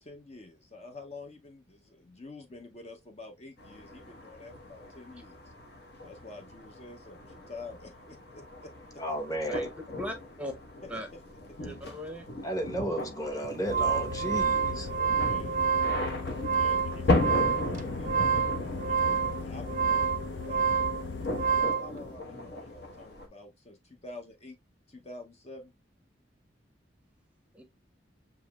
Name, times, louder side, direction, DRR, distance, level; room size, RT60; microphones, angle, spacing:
voice 1, 0.0-5.5 6.0-8.7 10.8-11.2 11.5-11.6 11.8-11.9 14.9-20.7 21.4-24.6 24.9-25.7, left 2 dB, 35° left, 0.7 m, -48 dB
sound 1, 3.6-23.3, left 2 dB, 55° left, 1.1 m, -37 dB
voice 2, 9.0-9.7 12.4-14.9, right 1 dB, 20° left, 1.0 m, -33 dB
voice 3, 10.0-10.5 10.9-11.1 11.6-12.2 27.6-27.7, equal, 5° right, 0.7 m, -38 dB
sound 2, 13.4-21.9, right 6 dB, 45° right, 0.5 m, -28 dB
sound 3, 13.7-21.6, left 4 dB, 80° left, 0.6 m, -38 dB
6.9 x 3.0 x 2.3 m
head